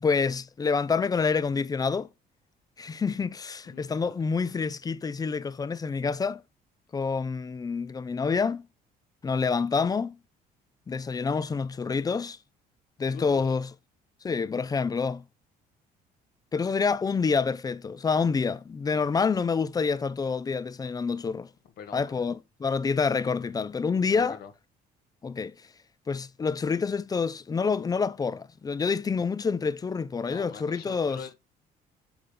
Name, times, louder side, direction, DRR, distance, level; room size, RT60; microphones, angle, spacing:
voice 1, 0.0-2.1 2.8-6.4 6.9-8.7 9.2-10.2 10.9-12.4 13.0-13.7 14.2-15.2 16.5-21.5 21.9-24.4 25.2-25.5 26.1-31.2, left 5 dB, 20° left, 0.5 m, -27 dB
voice 2, 3.6-4.1 13.1-13.6 18.9-19.0 21.8-22.2 24.1-24.5 30.2-31.3, left 8 dB, 65° left, 1.5 m, -44 dB
7.9 x 5.0 x 3.8 m
cardioid pair, 110°, 17 cm